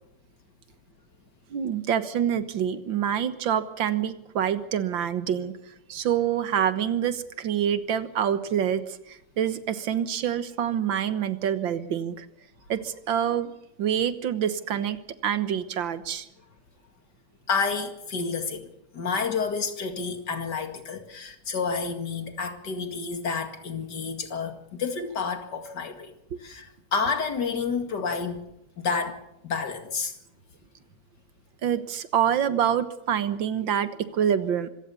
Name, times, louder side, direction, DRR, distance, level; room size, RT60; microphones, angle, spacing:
voice 1, 1.5-5.5 5.9-12.3 12.7-13.5 13.8-16.3 31.6-34.7, right 9 dB, 85° right, 1.9 m, -26 dB
voice 2, 17.5-18.7 18.9-26.1 26.4-28.4 28.8-30.2, left 5 dB, 65° left, 2.8 m, -30 dB
25.5 x 16.5 x 7.0 m
omnidirectional pair, 2.0 m